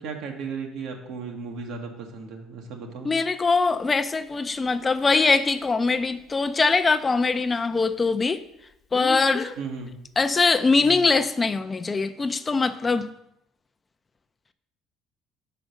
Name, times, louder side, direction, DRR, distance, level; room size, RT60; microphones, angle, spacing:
voice 1, 0.0-3.1 9.6-10.0, right 5 dB, 70° right, 1.3 m, -35 dB
voice 2, 3.0-8.4 8.9-9.5 10.2-13.1, left 4 dB, 25° left, 0.5 m, -22 dB
Speech, 3.6-3.7 8.9-9.6 10.8-11.1, left 4 dB, 45° left, 0.9 m, -36 dB
5.0 x 5.0 x 6.3 m
supercardioid pair, 90°, 0 cm